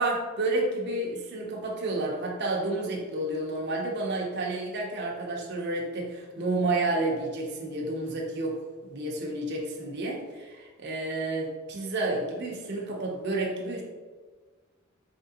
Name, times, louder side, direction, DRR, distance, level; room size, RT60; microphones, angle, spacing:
voice 1, 0.0-8.6 8.8-13.8, right 2 dB, 55° right, 0 dB, 0.7 m, -30 dB
4.3 x 3.6 x 2.8 m, 1.4 s
head